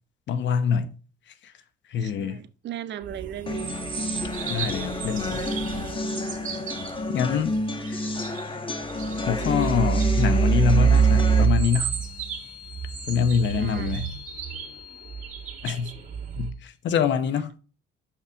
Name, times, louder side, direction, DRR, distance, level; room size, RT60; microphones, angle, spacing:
voice 1, 0.3-0.9 1.9-2.4 4.5-5.4 7.1-7.5 7.8-8.1 9.3-11.9 13.1-14.1 15.6-15.9 16.3-17.5, left 7 dB, 65° left, 0.8 m, -25 dB
voice 2, 2.0-3.8 13.5-14.0, right 11 dB, 65° right, 0.5 m, -37 dB
sound 1, 3.0-8.5 8.8-16.5, right 6 dB, 40° right, 2.1 m, -27 dB
sound 2, 3.5-11.4, left 2 dB, 25° left, 1.1 m, -30 dB
sound 3, 10.8-16.5, left 14 dB, 90° left, 4.0 m, -47 dB
6.6 x 5.8 x 3.4 m
cardioid pair, 90°, 20 cm